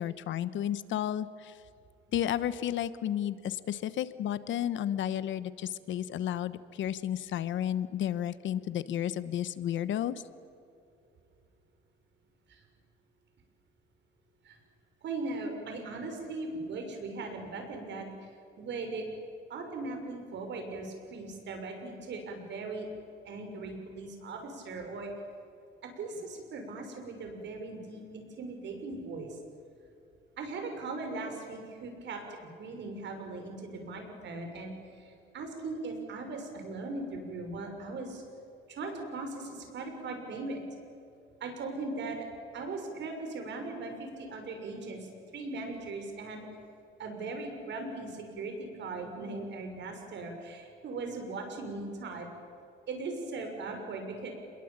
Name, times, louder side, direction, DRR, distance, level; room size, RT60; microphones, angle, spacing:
voice 1, 0.0-1.6 2.1-10.2, left 10 dB, 65° left, 14 dB, 1.2 m, -32 dB
voice 2, 15.0-18.1 18.6-19.0 19.5-22.9 23.2-25.1 25.8-29.4 30.4-32.2 32.6-38.2 38.7-40.7 41.4-42.3 42.5-45.1 45.3-46.5 47.0-52.3 52.9-54.3, right 3 dB, 60° right, 4 dB, 6.5 m, -39 dB
27.5 x 22.0 x 9.0 m, 2.6 s
cardioid pair, 130°, 21 cm